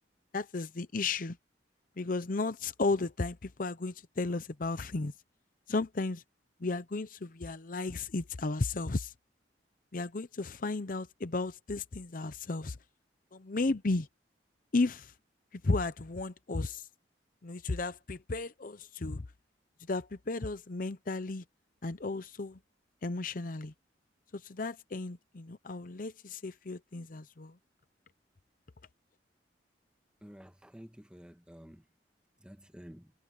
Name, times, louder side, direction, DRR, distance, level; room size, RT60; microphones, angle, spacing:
voice 1, 0.3-1.4 2.0-5.1 5.7-6.2 6.6-9.1 9.9-12.8 13.3-14.1 14.7-15.1 15.5-16.9 17.4-19.2 19.9-21.4 21.8-22.6 23.0-23.7 24.3-27.5, left 3 dB, 50° left, 0.7 m, -34 dB
voice 2, 30.2-31.8 32.4-33.1, equal, 5° right, 1.4 m, -51 dB
head